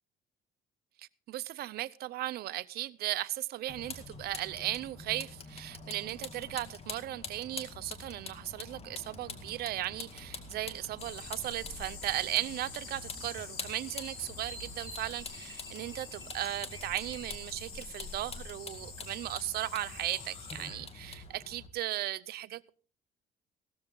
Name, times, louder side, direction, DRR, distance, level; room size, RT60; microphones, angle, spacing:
voice 1, 1.0-22.7, right 15 dB, 65° right, 0.6 m, -37 dB
Vehicle, 3.7-21.7, left 4 dB, 35° left, 2.1 m, -46 dB
sound 1, 8.9-17.3, equal, 20° left, 7.4 m, -54 dB
sound 2, 11.0-20.7, left 5 dB, 65° left, 6.4 m, -47 dB
16.5 x 13.0 x 3.9 m
cardioid pair, 110°, 17 cm